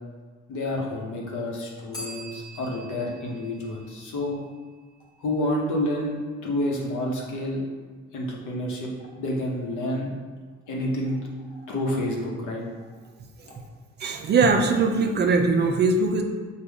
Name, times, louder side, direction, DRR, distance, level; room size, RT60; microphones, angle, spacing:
voice 1, 0.5-4.4 5.2-7.6 8.1-8.9 9.2-10.1 10.7-11.2 11.5-12.6, left 1 dB, 85° left, -1 dB, 1.0 m, -29 dB
Bell, 1.9-4.7, right 1 dB, 15° left, 1.3 m, -43 dB
voice 2, 14.0-16.2, right 4 dB, 35° right, 4 dB, 0.4 m, -21 dB
5.3 x 2.4 x 3.5 m, 1.5 s
cardioid pair, 130°, 30 cm